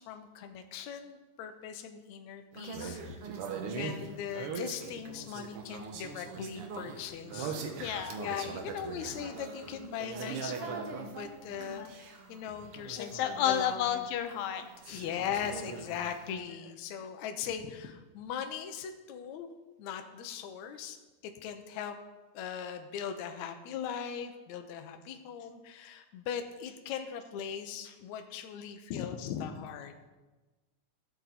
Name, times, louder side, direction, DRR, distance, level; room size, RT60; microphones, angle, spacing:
voice 1, 0.0-3.0 3.7-7.6 8.2-14.1 14.9-19.5 19.8-21.0 21.2-22.0 22.3-29.9, left 8 dB, 70° left, 6 dB, 1.9 m, -40 dB
sound 1, 2.5-14.0 14.3-16.3, right 5 dB, 85° right, 1.2 m, -41 dB
voice 2, 7.8-8.2 11.8-11.9 13.0-15.1 28.9-29.5, left 10 dB, 85° left, 7 dB, 2.6 m, -32 dB
16.0 x 7.2 x 4.2 m, 1.2 s
omnidirectional pair, 4.0 m